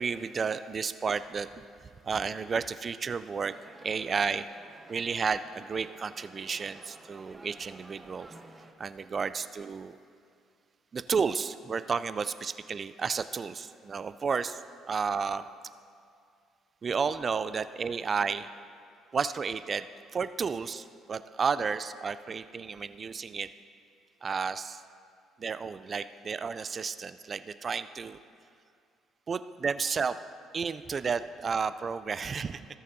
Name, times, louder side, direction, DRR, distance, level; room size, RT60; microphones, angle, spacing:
voice 1, 0.0-1.5 2.0-3.5 3.8-4.5 4.9-8.3 8.8-10.0 10.9-14.6 14.9-15.4 16.8-18.5 19.1-19.8 20.1-23.5 24.2-24.8 25.4-28.2 29.3-30.2 30.5-32.6, right 5 dB, 40° right, 13 dB, 0.3 m, -32 dB
sound 1, 3.4-8.7, right 2 dB, 15° right, 0.9 m, -52 dB
16.5 x 6.6 x 2.6 m, 2.3 s
hypercardioid pair, 55°, 0 cm